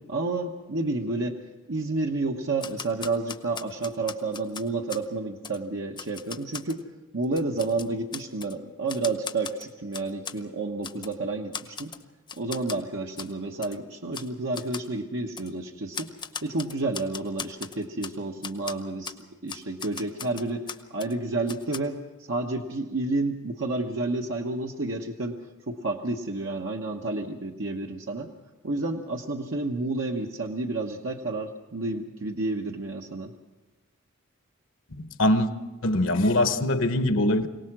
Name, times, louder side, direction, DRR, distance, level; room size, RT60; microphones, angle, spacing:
voice 1, 0.0-6.8 7.1-11.9 12.3-16.1 16.4-19.1 19.4-22.0 22.3-25.4 25.7-28.3 28.6-33.3, right 2 dB, 70° right, 1.1 m, -30 dB
Typewriter, 2.6-5.1 5.4-5.6 6.0-6.8 7.2-8.5 8.9-10.4 10.8-11.1 11.5-12.0 12.3-12.8 13.2-13.3 13.6-13.8 14.1-14.3 14.5-14.9 15.4-15.5 15.9-18.1 18.4-18.7 19.0-19.2 19.5-21.1 21.5-21.8, left 6 dB, 25° left, 0.8 m, -38 dB
voice 2, 35.0-35.5 35.8-37.5, left 1 dB, 70° left, 1.1 m, -22 dB
23.5 x 18.0 x 6.1 m
head